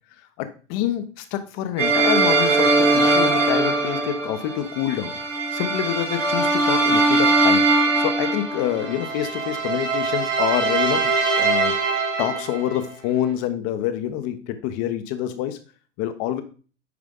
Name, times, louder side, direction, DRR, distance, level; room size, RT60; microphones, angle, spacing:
voice 1, 0.4-5.1 5.5-7.6 8.0-11.1 11.4-15.6 16.0-16.4, left 11 dB, 40° left, 10 dB, 1.1 m, -27 dB
sound 1, 1.8-12.8, right 3 dB, 80° right, 2.2 m, -21 dB
9.6 x 4.8 x 3.8 m, 0.38 s
figure-of-eight pair, 100°, 37 cm